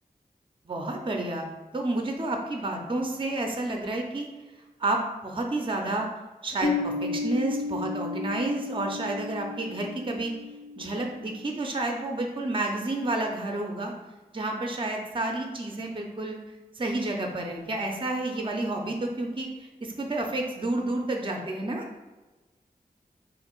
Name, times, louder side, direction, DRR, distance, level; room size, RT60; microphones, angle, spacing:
voice 1, 0.7-4.3 4.8-6.1 6.4-10.3 10.8-13.9 14.3-16.4 16.8-19.7 20.0-21.8, right 2 dB, 30° right, 2 dB, 0.5 m, -30 dB
Piano, 6.6-12.0, left 3 dB, 40° left, 0.8 m, -34 dB
2.9 x 2.5 x 4.4 m, 1.2 s
wide cardioid pair, 50°, 16 cm